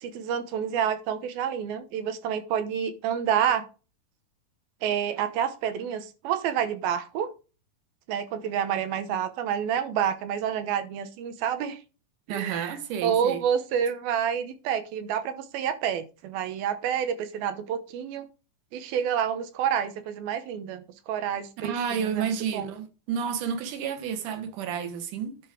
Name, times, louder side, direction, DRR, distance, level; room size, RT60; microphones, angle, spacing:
voice 1, 0.0-3.7 4.8-7.3 8.1-11.8 12.3-18.3 18.7-20.8 21.1-22.7, right 8 dB, 90° right, 2.8 m, -28 dB
voice 2, 12.3-13.4 21.6-25.4, right 7 dB, 70° right, 2.6 m, -31 dB
10.5 x 5.0 x 5.1 m
omnidirectional pair, 4.3 m